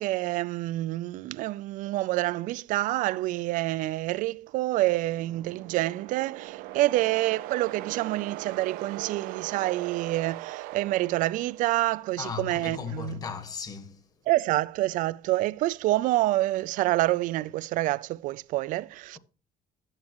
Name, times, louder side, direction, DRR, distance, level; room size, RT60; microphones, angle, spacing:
voice 1, 0.0-13.2 14.3-19.2, right 17 dB, 60° right, 0.4 m, -27 dB
sound 1, 4.9-11.9, right 16 dB, 90° right, 0.7 m, -40 dB
voice 2, 12.2-14.0, left 5 dB, 25° left, 1.2 m, -36 dB
12.5 x 8.9 x 3.0 m
cardioid pair, 160°, 15 cm